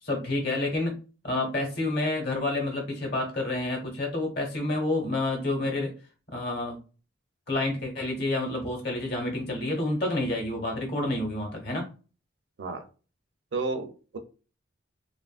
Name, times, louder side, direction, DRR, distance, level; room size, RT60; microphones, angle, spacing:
voice 1, 0.0-1.0 1.2-5.9 6.3-6.8 7.5-11.9, left 2 dB, 55° left, 2 dB, 1.0 m, -29 dB
voice 2, 13.5-14.2, right 3 dB, 70° right, 7 dB, 0.5 m, -32 dB
2.9 x 2.4 x 2.3 m, 0.34 s
head